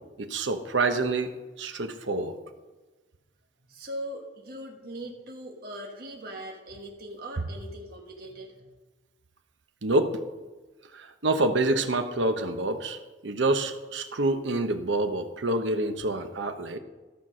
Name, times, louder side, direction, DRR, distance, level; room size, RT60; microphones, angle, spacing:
voice 1, 0.2-1.3 1.6-2.4 9.8-10.2 10.9-16.8, right 2 dB, 75° right, 7 dB, 1.0 m, -27 dB
voice 2, 3.7-8.7, right 1 dB, 55° right, 0 dB, 1.4 m, -40 dB
13.5 x 6.0 x 6.3 m, 1.2 s
head